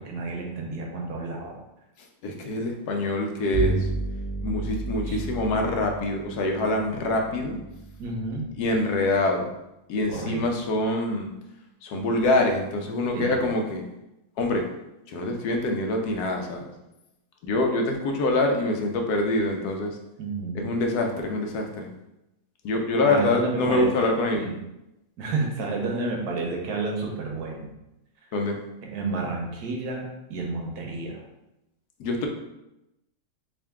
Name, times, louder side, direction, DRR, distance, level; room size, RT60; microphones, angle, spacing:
voice 1, 0.0-1.5 5.1-5.2 8.0-8.5 10.1-10.4 13.1-13.4 20.2-20.7 23.0-24.5 25.2-27.7 28.9-31.2, right 3 dB, 85° right, 0 dB, 1.3 m, -30 dB
voice 2, 2.2-3.9 4.4-7.6 8.6-9.5 9.9-11.3 11.8-13.8 14.4-14.7 15.1-16.6 17.4-20.0 20.5-21.9 22.6-24.4 28.3-28.6 32.0-32.3, left 2 dB, 85° left, 2 dB, 1.2 m, -25 dB
Bowed string instrument, 3.5-9.2, right 3 dB, 45° right, 1.1 m, -32 dB
3.7 x 2.7 x 3.5 m, 0.92 s
omnidirectional pair, 1.6 m